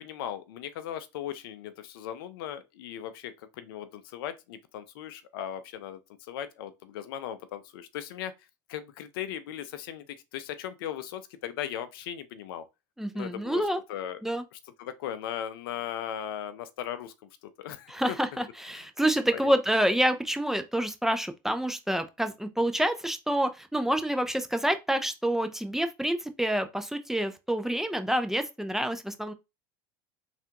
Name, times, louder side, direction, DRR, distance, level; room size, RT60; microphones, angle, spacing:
voice 1, 0.0-8.3 8.7-10.1 10.3-12.6 13.1-14.2 14.5-17.1 17.6-18.2 18.8-18.9 19.3-19.5, left 10 dB, 80° left, 0.5 m, -38 dB
voice 2, 13.0-13.8 14.2-14.4 17.9-29.3, right 1 dB, 5° right, 0.5 m, -28 dB
3.3 x 2.4 x 2.9 m
hypercardioid pair, 95°, 12 cm